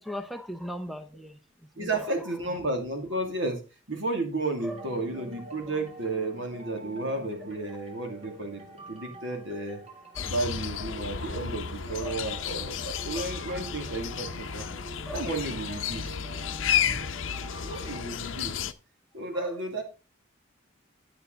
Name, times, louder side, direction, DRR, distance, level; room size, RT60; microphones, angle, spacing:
voice 1, 0.0-1.4 1.8-2.6 4.6-4.9 10.2-10.5 12.0-12.2 15.0-15.3 19.3-19.5, equal, ahead, 9 dB, 0.6 m, -39 dB
voice 2, 1.8-3.6 3.9-8.6 8.9-9.8 10.2-14.6 15.1-16.2 16.8-17.1 17.6-18.7 19.1-19.8, right 2 dB, 70° right, 4 dB, 2.4 m, -32 dB
sound 1, 4.7-18.0, right 1 dB, 30° right, 1.8 m, -46 dB
sound 2, 10.2-18.7, left 8 dB, 75° left, 0.6 m, -32 dB
9.1 x 8.0 x 3.9 m, 0.31 s
head